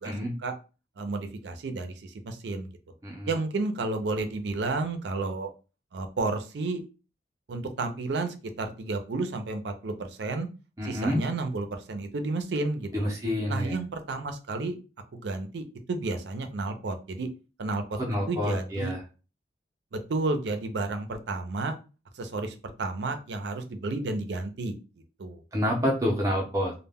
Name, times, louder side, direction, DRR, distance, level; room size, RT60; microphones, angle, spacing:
voice 1, 0.0-0.3 3.0-3.3 10.8-11.2 12.9-13.8 17.9-19.0 25.5-26.7, equal, 20° right, -1 dB, 0.5 m, -28 dB
voice 2, 1.0-2.7 3.3-5.5 5.9-6.8 7.5-10.5 10.8-13.1 13.5-14.8 15.1-17.3 17.6-18.0 18.3-18.9 19.9-21.8 22.1-24.7 25.2-25.4, right 3 dB, 75° right, 7 dB, 0.4 m, -31 dB
2.1 x 2.1 x 3.4 m, 0.33 s
head